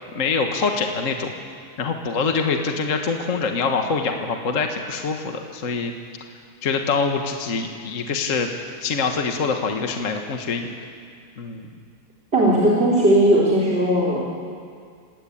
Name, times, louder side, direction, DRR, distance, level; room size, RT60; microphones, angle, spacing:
voice 1, 0.1-1.3 1.8-5.9 6.6-8.5 8.8-10.7 11.4-11.7, left 4 dB, 40° left, 4 dB, 1.7 m, -24 dB
voice 2, 12.3-14.3, right 1 dB, 30° right, -4 dB, 3.7 m, -17 dB
26.0 x 19.5 x 8.7 m, 2.2 s
omnidirectional pair, 2.2 m